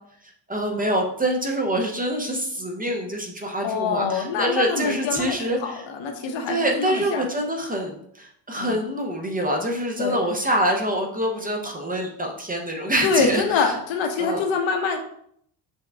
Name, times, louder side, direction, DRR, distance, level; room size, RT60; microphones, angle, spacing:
voice 1, 0.5-5.9 6.5-13.7 14.2-14.5, right 1 dB, 15° right, 2 dB, 0.6 m, -25 dB
voice 2, 3.6-7.3 8.5-8.8 10.0-10.2 13.0-15.0, left 5 dB, 65° left, 4 dB, 0.9 m, -25 dB
6.2 x 2.3 x 3.4 m, 0.68 s
cardioid pair, 105°, 49 cm